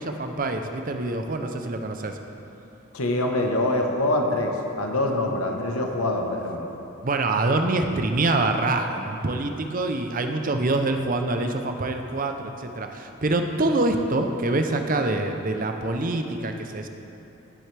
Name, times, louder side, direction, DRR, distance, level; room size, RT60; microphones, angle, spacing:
voice 1, 0.0-2.2 7.0-16.9, right 2 dB, 40° right, 5 dB, 0.6 m, -25 dB
voice 2, 2.9-6.7, left 1 dB, 80° left, 2 dB, 1.2 m, -25 dB
16.5 x 7.7 x 3.4 m, 3.0 s
head